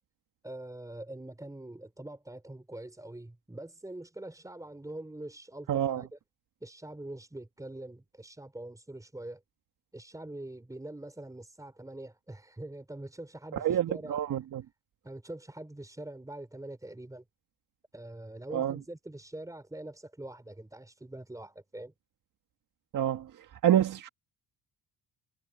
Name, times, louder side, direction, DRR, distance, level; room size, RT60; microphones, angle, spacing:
voice 1, 0.4-6.2 6.6-9.4 9.9-14.2 15.0-17.2 17.9-21.9, right 1 dB, 10° right, 4.8 m, -44 dB
voice 2, 5.7-6.0 13.5-14.6 18.5-18.8 22.9-23.3 23.6-24.1, right 11 dB, 60° right, 1.5 m, -27 dB
cardioid pair, 120°, 36 cm